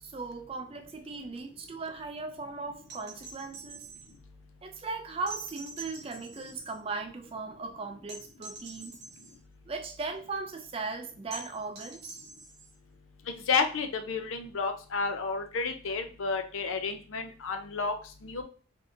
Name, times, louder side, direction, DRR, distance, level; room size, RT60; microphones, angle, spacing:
voice 1, 0.0-3.9 4.6-9.0 9.7-12.2, right 3 dB, 25° right, 0.3 m, -38 dB
sound 1, 2.9-4.1 5.3-6.8 8.1-9.4 11.3-12.8 14.6-14.7, right 3 dB, 50° right, 0.9 m, -45 dB
voice 2, 13.5-17.9 18.2-18.4, left 4 dB, 75° left, 0.5 m, -31 dB
3.5 x 2.7 x 2.6 m
head